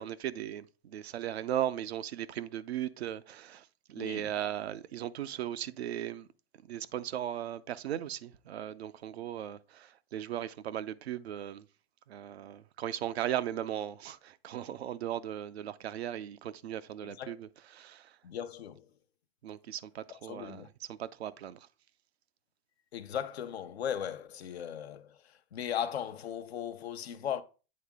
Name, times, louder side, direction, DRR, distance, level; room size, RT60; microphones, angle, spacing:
voice 1, 0.0-6.3 6.7-11.6 12.1-18.1 19.4-21.6, right 11 dB, 90° right, 0.5 m, -37 dB
voice 2, 4.0-4.3 17.0-17.3 18.2-18.9 20.1-20.7 22.9-27.4, left 9 dB, 90° left, 0.7 m, -37 dB
8.5 x 3.8 x 3.5 m
hypercardioid pair, 110°, 31 cm